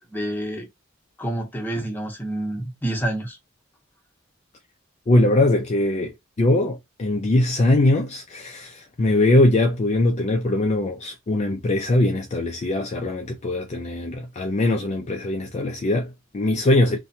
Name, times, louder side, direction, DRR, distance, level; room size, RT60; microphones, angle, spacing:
voice 1, 0.1-0.7 1.2-3.4, right 1 dB, 10° left, 0.8 m, -28 dB
voice 2, 5.1-17.0, left 1 dB, 35° left, 0.4 m, -21 dB
2.8 x 2.2 x 2.5 m
head